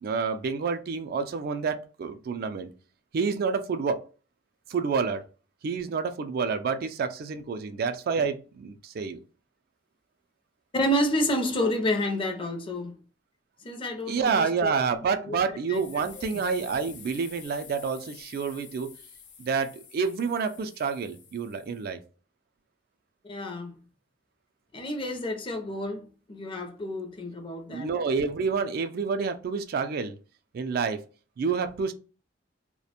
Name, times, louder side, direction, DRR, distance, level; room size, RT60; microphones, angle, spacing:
voice 1, 0.0-2.7 3.1-4.0 4.7-5.2 5.6-9.2 14.1-18.9 19.4-22.0 27.7-30.2 30.5-31.0 31.4-31.9, right 5 dB, 55° right, 0.3 m, -28 dB
voice 2, 10.7-12.9 13.6-15.4 15.7-16.3 23.2-23.8 24.7-27.9, equal, 30° left, 0.5 m, -30 dB
sound 1, 15.7-21.9, left 6 dB, 70° left, 0.7 m, -49 dB
2.4 x 2.1 x 2.7 m
head